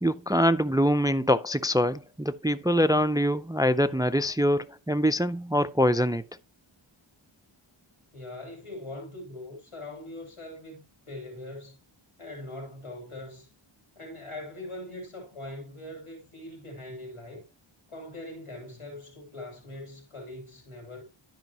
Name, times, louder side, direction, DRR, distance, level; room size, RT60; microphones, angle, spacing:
voice 1, 0.0-6.2, equal, 10° right, 0.4 m, -24 dB
voice 2, 8.1-11.8 12.2-13.5 13.9-17.5 17.9-21.0, left 1 dB, 90° left, 3.1 m, -41 dB
12.0 x 5.5 x 2.9 m
wide cardioid pair, 45°, 49 cm